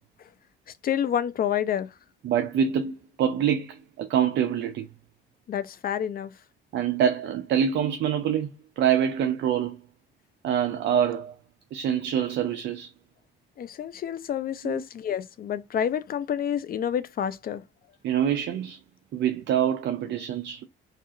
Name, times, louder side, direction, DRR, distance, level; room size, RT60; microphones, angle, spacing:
voice 1, 0.8-1.9 5.5-6.3 13.6-17.6, left 9 dB, 50° left, 0.4 m, -28 dB
voice 2, 2.2-4.9 6.7-8.5 8.8-9.8 10.4-11.3 11.7-12.9 14.6-14.8 18.0-18.8 19.1-20.6, right 9 dB, 65° right, 0.4 m, -25 dB
2.8 x 2.4 x 2.4 m
cardioid pair, 90°, 20 cm